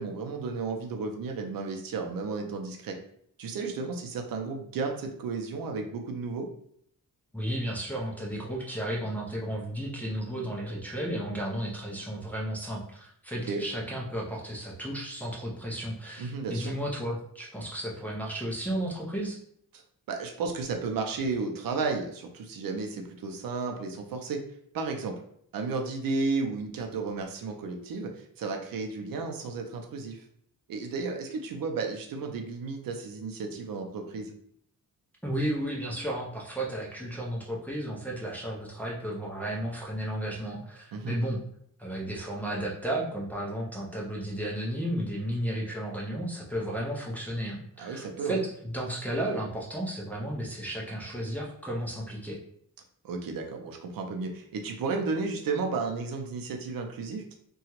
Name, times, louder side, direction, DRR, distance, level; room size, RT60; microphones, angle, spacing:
voice 1, 0.0-3.0 3.4-6.5 13.5-13.6 16.2-16.7 19.7-19.8 20.1-24.4 24.7-25.2 25.5-30.2 30.7-34.3 40.9-41.2 47.8-48.4 53.0-57.4, right 4 dB, 75° right, 3 dB, 0.5 m, -33 dB
voice 2, 7.3-19.4 35.2-41.4 41.8-52.4, right 1 dB, 5° left, -4 dB, 0.4 m, -33 dB
2.8 x 2.3 x 2.9 m, 0.67 s
wide cardioid pair, 165°, 35 cm